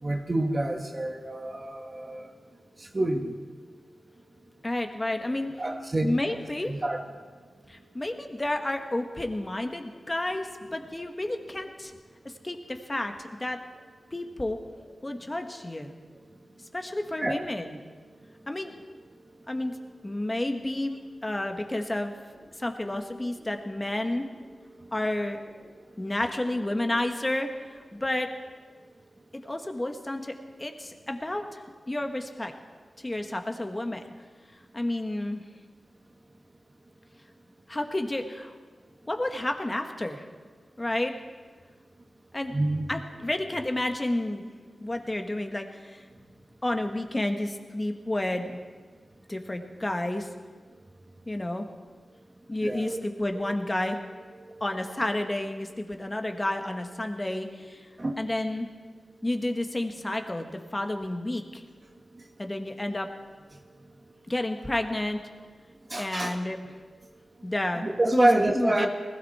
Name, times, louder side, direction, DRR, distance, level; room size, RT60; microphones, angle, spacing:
voice 1, 0.0-2.3 2.9-3.3 5.6-6.2 6.7-7.0 17.2-17.4 42.5-42.9 52.6-53.0 53.4-53.5 54.5-54.6 58.0-58.2 65.9-66.3 67.8-68.9, right 1 dB, 40° right, 2 dB, 1.6 m, -27 dB
voice 2, 4.6-5.5 6.0-6.7 7.7-11.9 12.4-13.6 14.1-14.6 15.0-15.9 16.7-17.8 18.5-18.7 19.5-22.1 22.6-24.2 24.9-25.4 26.0-28.3 29.3-30.3 30.6-31.6 31.9-32.5 33.0-34.0 34.7-35.4 37.7-38.5 39.0-40.2 40.8-41.1 42.3-42.5 42.9-44.4 44.8-46.0 46.6-48.6 49.3-50.3 51.2-51.7 52.5-54.0 54.6-57.9 58.2-58.7 59.2-61.6 62.4-63.1 64.3-65.2 66.0-66.6 67.4-67.8 68.1-68.3 68.5-68.9, left 1 dB, 25° left, 5 dB, 1.7 m, -30 dB
20.0 x 16.0 x 4.4 m, 1.5 s
cardioid pair, 55°, 0 cm